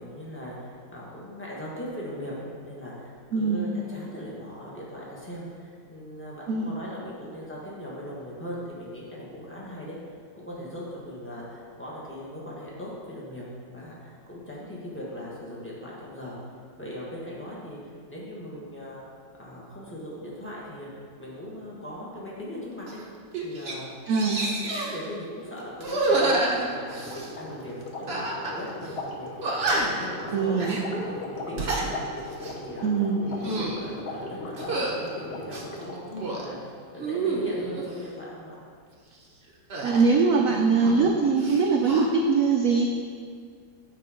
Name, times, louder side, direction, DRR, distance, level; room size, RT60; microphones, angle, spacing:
voice 1, 0.0-10.0 10.3-13.4 13.7-16.4 16.8-17.8 18.1-19.0 19.4-20.9 21.2-23.0 23.4-23.8 24.3-24.4 24.7-27.1 27.4-32.0 32.4-32.9 33.4-38.6, equal, 5° left, -6 dB, 1.3 m, -39 dB
voice 2, 3.3-3.7 6.5-6.7 24.1-24.5 30.3-30.8 32.8-33.4 39.8-42.9, right 4 dB, 85° right, 2 dB, 0.7 m, -22 dB
sound 1, 22.9-23.0 23.3-23.8 24.1-25.0 25.8-27.3 28.1-28.6 28.9-29.0 29.4-30.1 30.5-30.8 31.4-31.9 32.3-32.6 33.2-33.8 34.6-35.0 35.5-36.5 37.0-37.9 39.7-41.1 41.4-42.1, right 2 dB, 45° right, 0.8 m, -29 dB
sound 2, 26.7-36.1, left 2 dB, 50° left, 0.8 m, -38 dB
8.6 x 4.6 x 5.0 m, 2.1 s
omnidirectional pair, 2.1 m